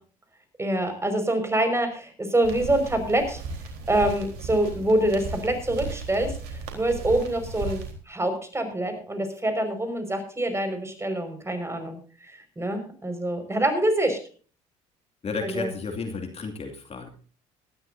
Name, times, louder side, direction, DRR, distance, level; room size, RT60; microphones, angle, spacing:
voice 1, 0.6-3.4 3.9-14.2 15.4-15.7, right 1 dB, 15° right, 7 dB, 5.4 m, -26 dB
sound 1, 2.4-7.9, right 4 dB, 70° right, 3.9 m, -36 dB
voice 2, 15.2-17.1, left 4 dB, 40° left, 4 dB, 2.6 m, -32 dB
19.0 x 13.0 x 2.7 m, 0.39 s
hypercardioid pair, 60°, 16 cm